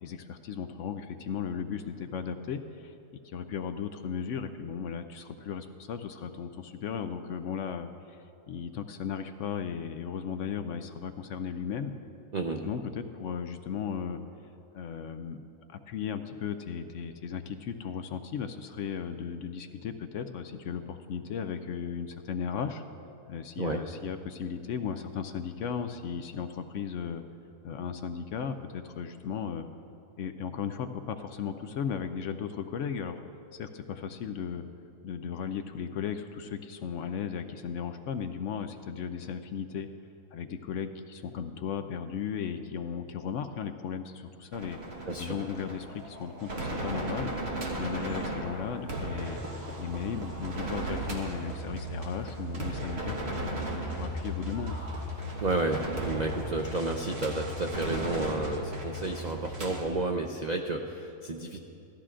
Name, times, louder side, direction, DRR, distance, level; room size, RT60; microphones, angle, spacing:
voice 1, 0.0-2.9 3.2-11.9 12.6-14.2 14.7-15.4 15.7-22.8 23.3-27.2 27.6-29.7 30.2-33.2 33.5-34.6 35.0-39.9 40.3-44.8 45.2-47.3 47.7-49.4 49.8-53.6 53.9-54.8, left 7 dB, 65° left, 8 dB, 0.8 m, -36 dB
voice 2, 12.3-12.7 23.6-23.8 45.1-45.4 55.4-61.6, right 2 dB, 85° right, 3 dB, 0.3 m, -31 dB
sound 1, 44.5-59.8, right 1 dB, 45° right, 1.5 m, -36 dB
16.5 x 13.5 x 2.5 m, 2.7 s
omnidirectional pair, 1.5 m